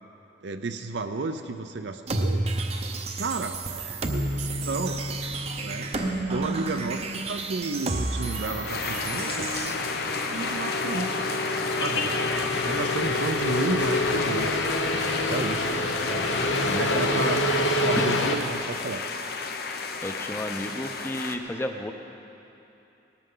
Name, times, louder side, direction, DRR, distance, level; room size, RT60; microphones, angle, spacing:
voice 1, 0.4-2.4 3.2-5.0 5.6-5.9 6.3-9.5 10.1-11.2 11.8-12.0 12.6-14.6 15.2-15.7 16.1-16.3 16.6-17.4 17.7-19.0, right 3 dB, 75° right, 7 dB, 0.6 m, -32 dB
sound 1, 2.1-9.7, right 2 dB, 35° right, 0.7 m, -30 dB
sound 2, 8.0-18.4, left 2 dB, 85° left, 1.0 m, -27 dB
sound 3, 8.7-21.4, left 4 dB, 55° left, 0.7 m, -33 dB
voice 2, 16.7-17.3 18.0-18.1 20.0-21.9, left 1 dB, 15° left, 5 dB, 0.7 m, -33 dB
18.5 x 13.5 x 3.9 m, 2.9 s
head